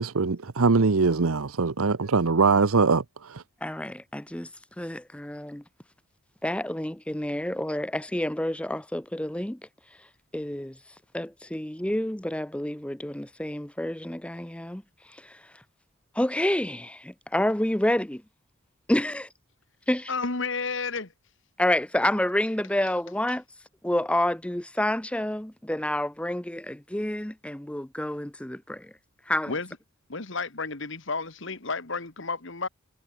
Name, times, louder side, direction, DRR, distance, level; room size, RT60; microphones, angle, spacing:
voice 1, 0.0-3.4, right 4 dB, 85° right, 0.9 m, -22 dB
voice 2, 3.6-4.5 4.8-5.6 6.4-9.6 10.3-10.8 11.1-15.6 16.1-18.2 18.9-19.3 19.9-20.1 21.6-23.4 23.8-28.9 29.3-29.5, left 1 dB, 5° left, 0.7 m, -29 dB
voice 3, 20.1-21.1 29.5-29.7 30.1-32.7, left 4 dB, 60° left, 1.9 m, -31 dB
head